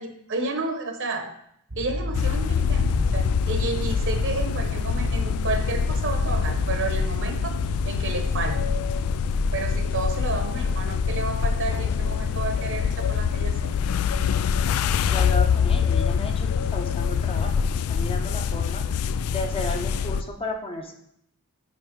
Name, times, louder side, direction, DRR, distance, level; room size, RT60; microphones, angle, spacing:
voice 1, 0.0-1.3 1.7-7.5 7.8-8.7 9.5-13.8, right 3 dB, 55° right, 6 dB, 1.0 m, -31 dB
sound 1, 1.7-18.8 19.1-19.4, equal, 90° right, 2.2 m, -35 dB
sound 2, 2.1-20.2, left 6 dB, 70° left, 0.3 m, -25 dB
voice 2, 15.0-20.9, left 2 dB, 25° left, 3 dB, 0.8 m, -34 dB
9.4 x 3.2 x 5.2 m, 0.73 s
head